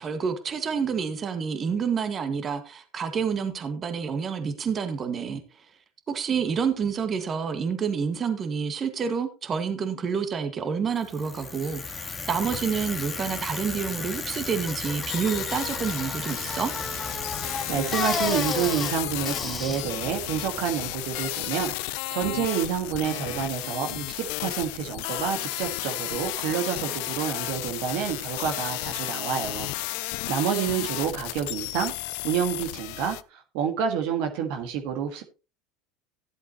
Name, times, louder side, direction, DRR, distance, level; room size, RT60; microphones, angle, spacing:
voice 1, 0.0-5.4 6.1-16.7, right 6 dB, 35° right, 1.8 m, -28 dB
Bicycle, 11.0-21.1, left 4 dB, 25° left, 2.2 m, -33 dB
sound 1, 15.1-33.2, left 19 dB, 70° left, 0.5 m, -33 dB
voice 2, 17.7-31.9 32.2-35.2, right 8 dB, 65° right, 1.6 m, -29 dB
14.0 x 8.0 x 3.0 m
hypercardioid pair, 80°, 0 cm